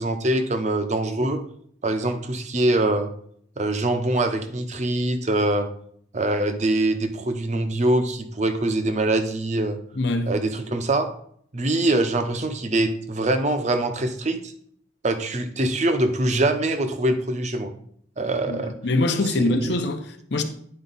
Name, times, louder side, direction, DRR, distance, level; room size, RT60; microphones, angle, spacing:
voice 1, 0.0-1.4 1.8-3.1 3.6-5.7 6.1-9.8 10.3-11.1 11.5-14.5 15.0-17.7 18.2-18.7 19.4-19.7, right 2 dB, 35° right, 0.7 m, -23 dB
voice 2, 9.9-10.3 18.5-20.4, left 2 dB, 60° left, 0.7 m, -24 dB
9.7 x 4.5 x 4.0 m
head